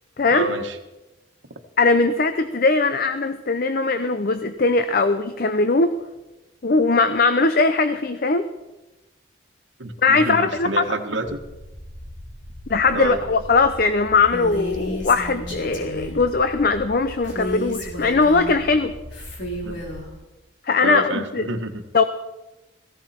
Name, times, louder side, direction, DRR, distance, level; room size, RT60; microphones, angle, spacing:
voice 1, 0.3-0.8 9.8-11.4 12.9-13.2 19.6-19.8 20.8-21.8, right 2 dB, 75° right, 5 dB, 1.5 m, -28 dB
voice 2, 1.8-5.9 6.6-8.5 10.0-11.0 12.7-18.9 20.7-21.5 21.9-22.0, left 3 dB, 50° left, 10 dB, 0.6 m, -20 dB
sound 1, 11.2-20.1, left 1 dB, 10° left, 2.8 m, -40 dB
Female speech woman speaking, 14.3-16.2 17.2-18.6 19.1-20.1, equal, 65° left, 3.9 m, -32 dB
18.0 x 15.5 x 4.4 m, 1.1 s
head